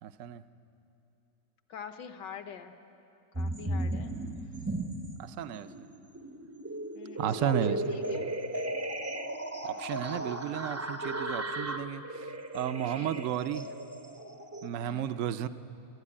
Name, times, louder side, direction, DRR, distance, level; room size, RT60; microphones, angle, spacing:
voice 1, 0.0-0.4 4.0-4.3 5.2-5.9 7.2-8.0 9.6-13.7 14.6-15.5, right 10 dB, 75° right, 12 dB, 0.7 m, -33 dB
voice 2, 1.7-2.7 3.4-4.1 6.9-8.3 12.9-13.2 14.8-15.3, left 7 dB, 70° left, 8 dB, 1.6 m, -44 dB
sound 1, 3.3-5.2 5.6-14.7, right 1 dB, 25° right, 0.3 m, -36 dB
20.5 x 13.0 x 9.7 m, 2.8 s
omnidirectional pair, 2.0 m